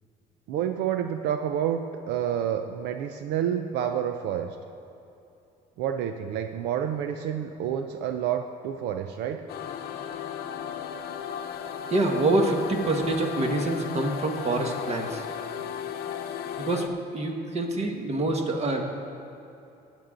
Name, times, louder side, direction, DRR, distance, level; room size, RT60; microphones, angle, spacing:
voice 1, 0.5-4.6 5.8-9.5 17.8-17.9, right 9 dB, 85° right, 7 dB, 0.6 m, -29 dB
sound 1, 9.5-16.9, left 8 dB, 65° left, 0.8 m, -35 dB
voice 2, 11.9-15.2 16.6-16.8 17.1-18.8, right 2 dB, 40° right, 3 dB, 1.6 m, -26 dB
18.5 x 8.4 x 3.8 m, 2.8 s
cardioid pair, 110°, 17 cm